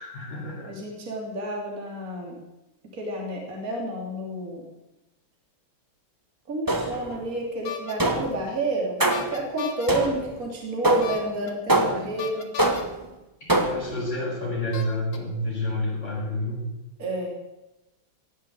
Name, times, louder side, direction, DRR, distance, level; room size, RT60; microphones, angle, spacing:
voice 1, 0.0-0.7 13.5-16.6, left 1 dB, 30° left, -6 dB, 7.6 m, -29 dB
voice 2, 0.7-2.4 2.9-4.7 6.5-12.5 17.0-17.3, right 1 dB, 40° right, -1 dB, 3.3 m, -30 dB
sound 1, 6.7-7.2 8.0-8.4 9.0-9.4 9.9-10.3 10.8-11.3 11.7-12.2 12.6-13.0 13.5-13.9, right 1 dB, 10° right, 1.1 m, -24 dB
sound 2, 7.7-7.9 9.1-9.9 11.0-11.5 12.2-12.8 13.9-14.0 14.7-15.2, left 7 dB, 75° left, 2.4 m, -35 dB
16.5 x 8.5 x 8.6 m, 0.97 s
omnidirectional pair, 2.3 m